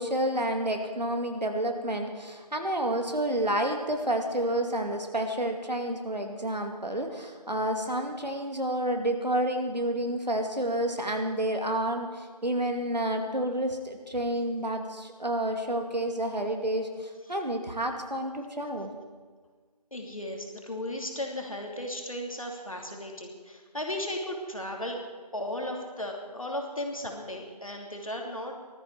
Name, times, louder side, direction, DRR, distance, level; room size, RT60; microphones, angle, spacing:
voice 1, 0.0-18.9, right 1 dB, 85° right, 4 dB, 2.5 m, -29 dB
voice 2, 19.9-25.0 25.3-28.5, left 1 dB, 55° left, 2 dB, 2.9 m, -35 dB
20.0 x 13.5 x 4.7 m, 1.5 s
figure-of-eight pair, 175°, 21 cm